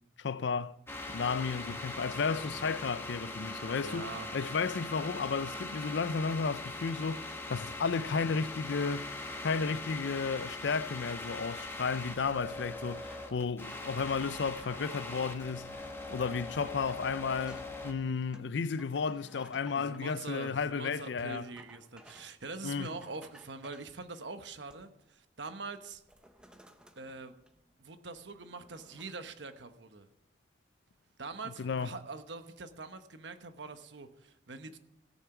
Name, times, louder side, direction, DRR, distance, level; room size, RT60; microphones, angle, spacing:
voice 1, 0.2-0.7 1.1-9.1 9.4-21.4 22.6-22.9 31.6-31.9, left 5 dB, 75° left, 0.5 m, -33 dB
sound 1, 0.9-17.9, left 2 dB, 10° left, 1.3 m, -41 dB
voice 2, 3.7-4.3 19.7-26.0 27.0-27.3 27.8-30.1 31.2-34.8, right 3 dB, 75° right, 1.1 m, -44 dB
sound 2, 12.6-15.5 16.1-16.2 16.6-17.7 18.3-20.1 21.3-22.4 22.8-23.9 24.4-25.1 25.4-25.6 25.9-27.8 28.2-29.1, right 1 dB, 5° right, 0.8 m, -58 dB
17.5 x 7.0 x 5.9 m
head